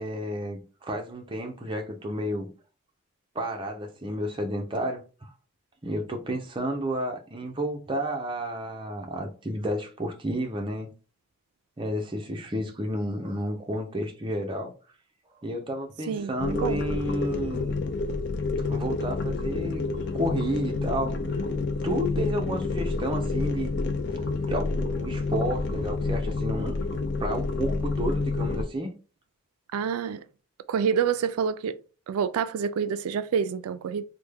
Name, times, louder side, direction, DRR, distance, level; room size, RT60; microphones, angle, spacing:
voice 1, 0.0-2.5 3.3-5.3 5.8-10.9 11.8-14.7 15.4-17.8 18.7-21.4 21.8-23.8 24.3-26.8 27.2-28.9, equal, 20° right, 0.5 m, -31 dB
voice 2, 16.1-16.8 29.7-30.2 30.7-31.8 32.1-34.0, right 7 dB, 85° right, 0.3 m, -27 dB
sound 1, 16.4-28.6, left 3 dB, 50° left, 0.4 m, -29 dB
3.3 x 2.2 x 3.3 m
head